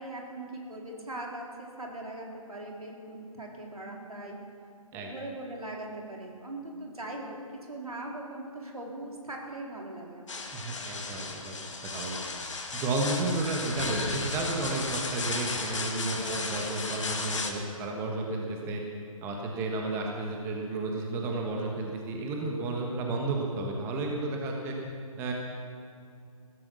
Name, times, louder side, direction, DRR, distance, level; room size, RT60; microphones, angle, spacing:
voice 1, 0.0-4.4 4.9-10.4 10.7-10.8 12.1-12.4 16.1-16.8, right 1 dB, 80° right, -1 dB, 3.9 m, -40 dB
sound 1, 10.3-17.5, left 3 dB, 55° left, 2.2 m, -35 dB
voice 2, 10.5-12.2 12.7-18.8 19.2-24.8 25.2-25.3, right 2 dB, 15° right, 0 dB, 1.3 m, -32 dB
16.0 x 14.0 x 6.4 m, 2.4 s
figure-of-eight pair, 145°, 18 cm